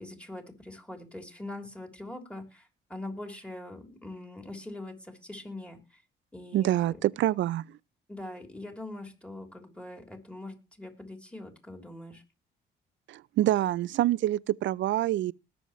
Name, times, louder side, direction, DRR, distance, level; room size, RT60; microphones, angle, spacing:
voice 1, 0.0-6.0 6.3-7.0 8.1-12.2, left 1 dB, 5° left, 3.4 m, -43 dB
voice 2, 6.5-7.6 13.1-15.3, right 14 dB, 70° right, 0.5 m, -26 dB
20.0 x 7.1 x 3.1 m
cardioid pair, 90°, 20 cm